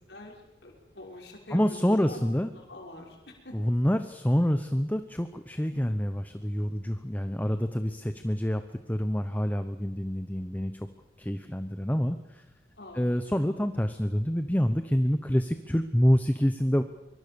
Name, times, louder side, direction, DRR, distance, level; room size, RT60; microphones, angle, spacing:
voice 1, 0.6-2.2 2.6-3.6 5.7-5.9 12.8-13.1, left 2 dB, 65° left, 0 dB, 5.5 m, -45 dB
voice 2, 1.5-2.5 3.5-10.9 11.2-12.4 12.9-16.8, equal, 10° left, 9 dB, 0.9 m, -27 dB
24.5 x 24.0 x 7.0 m, 1.0 s
head